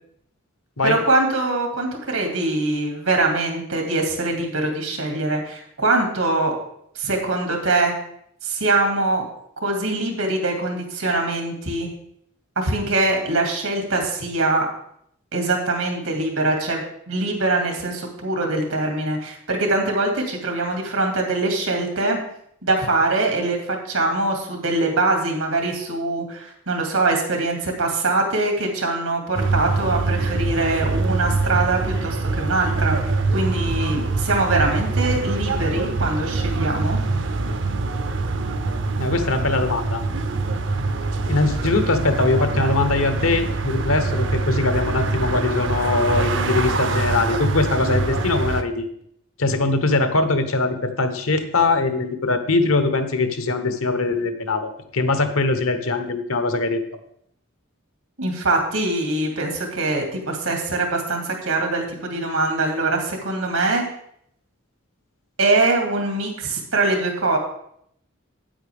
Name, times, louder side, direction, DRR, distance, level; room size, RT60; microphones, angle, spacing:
voice 1, 0.8-6.6 7.0-7.9 8.4-9.2 9.6-11.9 12.6-14.7 15.3-22.2 22.6-37.0 58.2-63.8 65.4-67.4, right 2 dB, 85° right, 2 dB, 2.3 m, -23 dB
sound 1, 29.3-48.6, right 3 dB, 60° right, 0.6 m, -24 dB
voice 2, 39.0-40.0 41.3-48.9 49.4-56.8, left 3 dB, 80° left, 8 dB, 1.0 m, -21 dB
9.1 x 9.0 x 3.5 m, 0.70 s
head